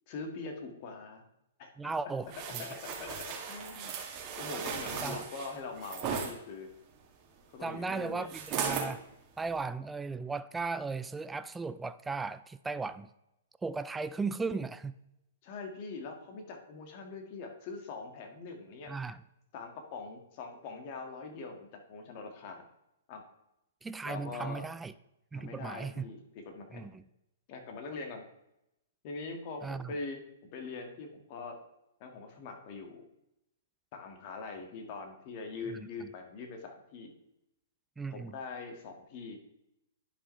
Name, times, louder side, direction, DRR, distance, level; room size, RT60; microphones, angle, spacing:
voice 1, 0.1-1.2 1.6-1.9 2.6-4.0 4.4-6.7 7.5-8.3 15.4-18.9 19.5-22.7 23.1-23.2 24.0-24.6 25.3-26.8 27.5-28.2 29.0-31.6 32.0-33.0 33.9-37.1 38.1-39.4, left 4 dB, 45° left, 3 dB, 1.7 m, -43 dB
voice 2, 1.8-2.7 5.0-5.2 7.6-9.0 9.4-13.1 13.6-14.9 18.9-19.2 23.8-24.9 25.3-26.1 26.7-27.0 29.6-29.9 35.7-35.8 38.0-38.4, right 4 dB, 10° right, 13 dB, 0.3 m, -36 dB
sound 1, 2.3-6.3 8.3-8.9 9.4-9.6, right 6 dB, 35° right, 1.8 m, -37 dB
11.0 x 5.0 x 3.2 m, 0.84 s
hypercardioid pair, 130°, 0 cm